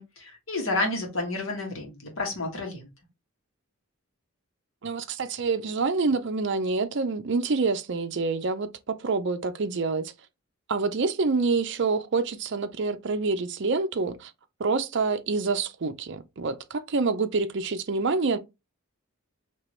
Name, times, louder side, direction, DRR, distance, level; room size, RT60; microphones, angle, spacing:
voice 1, 0.0-2.9, left 2 dB, 60° left, 1.6 m, -30 dB
voice 2, 4.8-10.1 10.7-14.3 14.6-18.4, right 4 dB, 55° right, 0.5 m, -27 dB
4.6 x 2.9 x 3.0 m
head